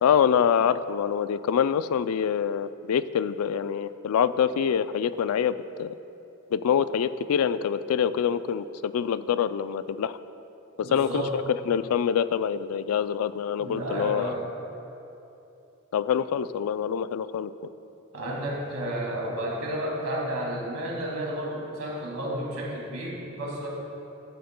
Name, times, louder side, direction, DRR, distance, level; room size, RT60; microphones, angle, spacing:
voice 1, 0.0-5.9 6.5-10.2 10.8-14.3 15.9-17.5, left 8 dB, 85° left, 14 dB, 0.3 m, -25 dB
voice 2, 10.8-11.4 13.6-14.4 18.1-23.7, right 1 dB, 85° right, -3 dB, 2.3 m, -32 dB
15.0 x 9.2 x 2.2 m, 2.9 s
head